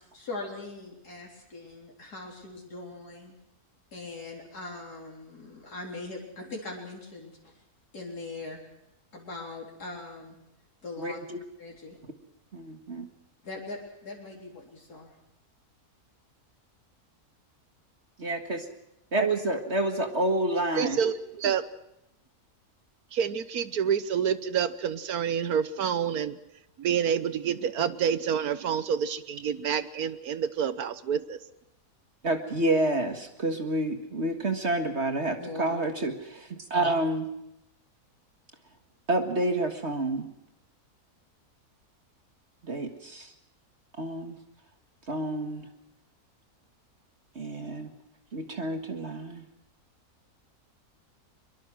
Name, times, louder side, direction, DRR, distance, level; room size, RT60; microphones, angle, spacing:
voice 1, 0.0-3.3 3.9-7.5 7.9-8.6 9.1-10.4 10.8-11.2 11.6-12.0 13.4-15.1 35.3-35.9, left 2 dB, 90° left, -2 dB, 4.4 m, -41 dB
voice 2, 11.0-11.4 12.5-13.1 18.2-18.7 19.1-21.0 32.2-37.3 39.1-40.3 42.6-43.3 44.0-44.4 45.1-45.7 47.4-47.9 48.3-49.5, right 1 dB, 45° right, 5 dB, 2.0 m, -29 dB
voice 3, 20.7-21.6 23.1-26.4 26.8-31.4, right 8 dB, 75° right, 14 dB, 1.5 m, -28 dB
23.5 x 22.5 x 6.3 m, 0.85 s
omnidirectional pair, 1.6 m